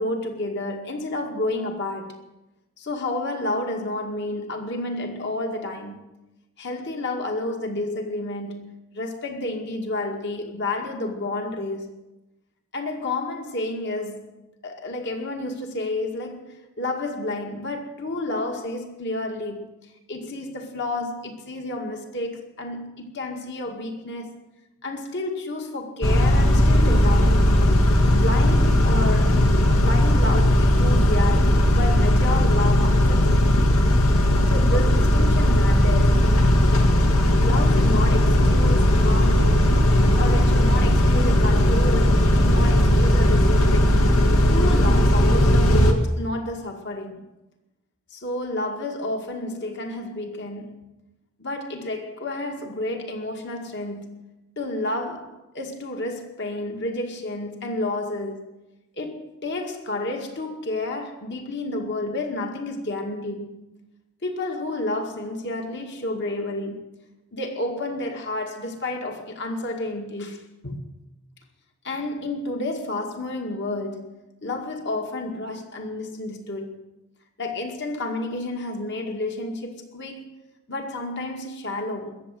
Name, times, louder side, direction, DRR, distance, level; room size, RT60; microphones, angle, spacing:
voice 1, 0.0-2.2 2.8-6.0 6.6-11.9 12.7-19.7 20.1-24.3 24.8-27.7 28.1-29.5 29.8-33.5 34.5-36.3 37.4-39.6 40.2-44.1 44.5-47.2 48.1-50.8 51.4-54.2 54.6-58.5 59.0-63.6 64.2-66.8 67.3-70.8 71.8-74.1 74.4-76.8 77.4-80.3 80.7-82.2, left 2 dB, 50° left, 2.1 m, -30 dB
Car / Idling / Accelerating revving vroom, 26.0-45.9, left 1 dB, 75° left, 1.9 m, -17 dB
21.0 x 7.8 x 7.7 m
head